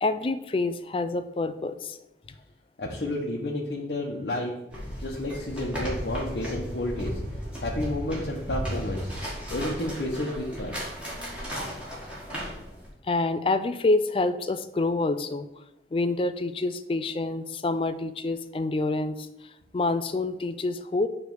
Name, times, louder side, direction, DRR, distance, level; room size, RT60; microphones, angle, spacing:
voice 1, 0.0-2.0 13.1-15.5 15.9-19.3 19.7-21.1, left 2 dB, 30° left, 11 dB, 0.3 m, -27 dB
voice 2, 2.8-4.5 5.0-7.2 7.6-9.1 9.5-10.8, left 1 dB, 75° left, -4 dB, 0.9 m, -31 dB
sound 1, 4.7-12.9, equal, 5° right, 2.0 m, -35 dB
9.1 x 3.3 x 4.7 m, 0.91 s
head